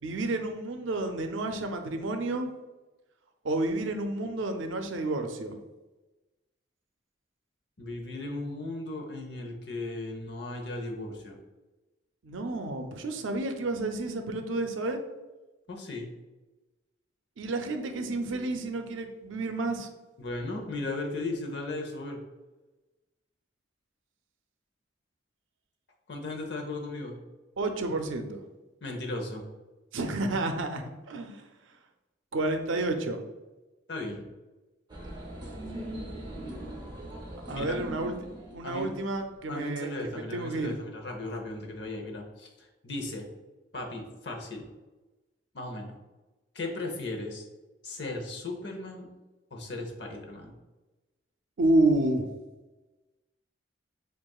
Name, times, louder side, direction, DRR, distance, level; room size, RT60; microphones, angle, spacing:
voice 1, 0.0-2.5 3.4-5.6 12.2-15.0 17.4-19.9 27.6-28.4 29.9-31.4 32.3-33.2 37.5-38.2 38.5-39.9 40.3-40.8 51.6-52.3, right 2 dB, 80° right, 6 dB, 0.5 m, -30 dB
voice 2, 7.8-11.4 15.7-16.1 20.2-22.2 26.1-27.2 28.8-29.4 33.9-34.3 37.5-37.8 38.6-38.9 39.5-42.5 42.8-43.3 43.7-44.7 45.5-45.9 46.5-47.4 47.8-49.1 49.5-50.5, left 2 dB, 60° left, 1 dB, 0.8 m, -36 dB
sound 1, 34.9-39.4, right 1 dB, 20° right, 0.7 m, -40 dB
7.4 x 2.5 x 2.3 m, 1.1 s
head